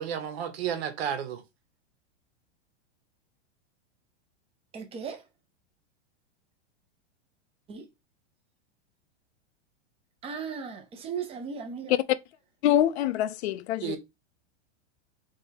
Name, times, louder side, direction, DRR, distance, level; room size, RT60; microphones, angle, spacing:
voice 1, 0.0-1.4 13.8-14.0, right 9 dB, 60° right, 1.3 m, -32 dB
voice 2, 4.7-5.2 7.7-7.8 10.2-11.9, right 6 dB, 15° right, 0.8 m, -36 dB
voice 3, 12.6-14.0, left 12 dB, 70° left, 0.6 m, -25 dB
3.5 x 3.3 x 4.4 m
supercardioid pair, 150°, 34 cm